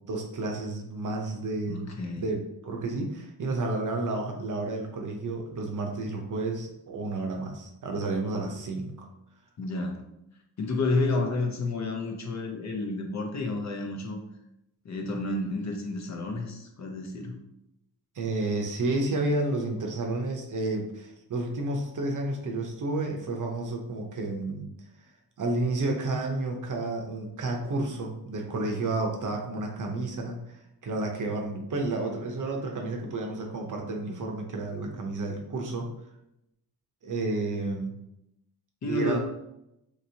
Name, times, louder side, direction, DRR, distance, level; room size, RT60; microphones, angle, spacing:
voice 1, 0.1-9.1 18.2-24.7 25.4-30.6 30.8-35.9 37.0-38.0 38.9-39.2, right 2 dB, 50° right, 2 dB, 0.8 m, -31 dB
voice 2, 1.7-2.3 9.6-10.1 10.6-14.2 14.8-17.4 38.8-39.2, left 2 dB, 45° left, 2 dB, 0.7 m, -30 dB
3.0 x 2.9 x 2.7 m, 0.83 s
cardioid pair, 65°, 39 cm